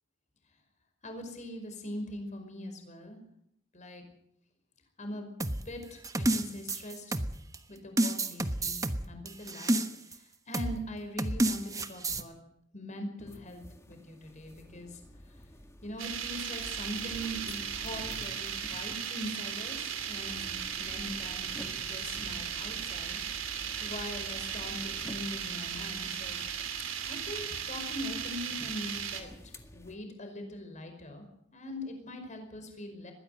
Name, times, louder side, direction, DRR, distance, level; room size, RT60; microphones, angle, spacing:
voice 1, 1.0-3.2 3.7-4.0 5.0-7.1 7.7-9.8 10.5-12.3 12.7-15.0 15.8-19.8 20.1-20.5 20.8-23.2 23.8-26.4 27.1-29.3 29.7-31.3 31.5-33.1, left 1 dB, 40° left, 5 dB, 5.1 m, -42 dB
sound 1, 5.4-7.6 8.0-10.2 10.5-10.8 11.2-12.2, right 1 dB, 20° right, 1.2 m, -30 dB
sound 2, 13.2-30.0, equal, 15° left, 1.9 m, -49 dB
sound 3, 16.0-29.2, right 8 dB, 80° right, 2.9 m, -37 dB
21.5 x 15.5 x 7.9 m, 0.72 s
head